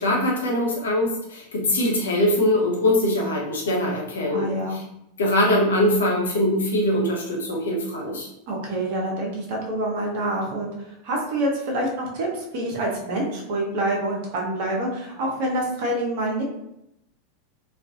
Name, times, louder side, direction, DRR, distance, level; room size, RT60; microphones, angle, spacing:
voice 1, 0.0-4.8 5.2-8.3, left 1 dB, 80° left, -1 dB, 0.7 m, -22 dB
voice 2, 4.3-4.8 8.5-16.4, right 1 dB, 55° right, -1 dB, 0.8 m, -27 dB
2.4 x 2.2 x 2.6 m, 0.80 s
hypercardioid pair, 90°, 0 cm